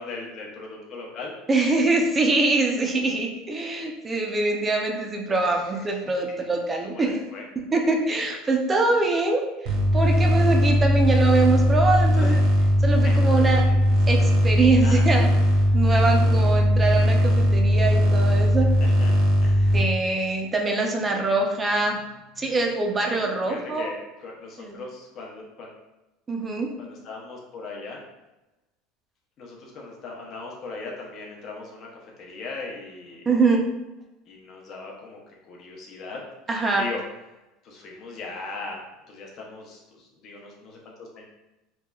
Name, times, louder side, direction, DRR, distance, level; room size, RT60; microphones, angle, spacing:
voice 1, 0.0-1.3 5.4-5.8 6.8-7.4 12.2-12.7 13.0-13.7 14.8-15.0 15.7-15.8 19.0-19.1 19.4-19.7 23.5-25.7 26.8-28.0 29.4-31.9 32.2-33.2 34.3-35.2 35.5-36.2 36.8-37.0 37.6-38.8 39.1-41.2, left 3 dB, 40° left, -2 dB, 0.5 m, -38 dB
voice 2, 1.5-7.2 7.6-9.4 9.9-12.4 12.8-13.7 14.1-15.4 15.7-18.7 19.7-22.0 22.4-23.9 24.6-24.8 26.3-26.7 33.3-33.7 36.5-36.9, right 3 dB, 15° right, 2 dB, 0.4 m, -23 dB
sound 1, 9.7-19.8, equal, 60° right, 0.6 m, -19 dB
2.9 x 2.2 x 2.3 m, 1.0 s
supercardioid pair, 145°, 0 cm